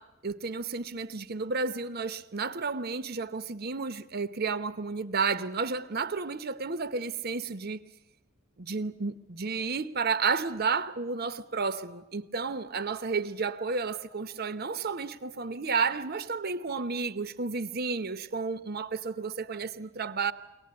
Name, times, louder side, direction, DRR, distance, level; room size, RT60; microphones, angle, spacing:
voice 1, 0.0-7.8 8.6-20.3, right 4 dB, 50° right, 0.8 m, -32 dB
24.0 x 18.0 x 9.6 m
head